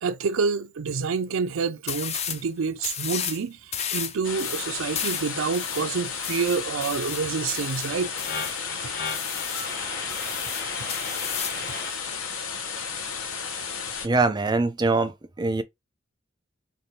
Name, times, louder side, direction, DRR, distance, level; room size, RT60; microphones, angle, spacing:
voice 1, 0.0-8.1, right 5 dB, 85° right, 0.5 m, -28 dB
sound 1, 1.9-2.4 2.8-3.4 3.7-8.6 9.1-9.7 10.1-11.6, left 8 dB, 30° left, 0.4 m, -33 dB
sound 2, 4.2-14.1, left 6 dB, 80° left, 0.8 m, -33 dB
sound 3, 8.1-11.9, left 4 dB, 55° left, 1.4 m, -36 dB
voice 2, 14.0-15.6, right 3 dB, 20° right, 0.5 m, -23 dB
3.4 x 2.3 x 4.1 m
head